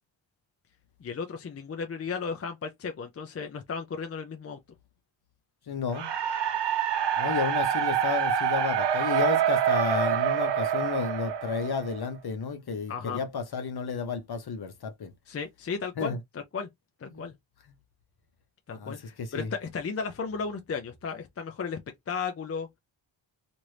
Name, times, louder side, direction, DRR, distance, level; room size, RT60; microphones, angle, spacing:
voice 1, 1.0-4.6 12.9-13.2 15.3-16.7 17.0-17.3 18.7-21.8 22.1-22.7, left 5 dB, 30° left, 0.4 m, -34 dB
voice 2, 5.7-6.1 7.2-15.1 16.0-16.2 17.1-17.2 17.7-17.8 18.7-19.5, left 5 dB, 50° left, 0.9 m, -32 dB
sound 1, 5.9-12.1, right 9 dB, 55° right, 0.7 m, -26 dB
3.0 x 2.6 x 3.1 m
wide cardioid pair, 155°, 50 cm